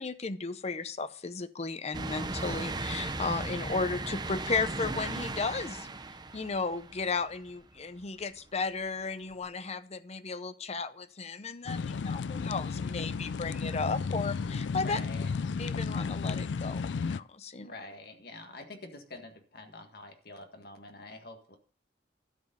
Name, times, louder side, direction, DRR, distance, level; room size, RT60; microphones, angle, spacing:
voice 1, 0.0-5.9 6.3-15.0 15.6-17.7, left 4 dB, 35° left, 13 dB, 0.7 m, -34 dB
sound 1, 1.9-7.5 8.0-8.1 9.4-9.5, right 2 dB, 25° right, 0.8 m, -37 dB
sound 2, 11.7-17.2, left 5 dB, 80° left, 0.4 m, -33 dB
voice 2, 14.7-15.3 17.6-21.6, left 2 dB, 60° left, 5 dB, 1.7 m, -46 dB
12.5 x 5.2 x 6.7 m, 0.43 s
head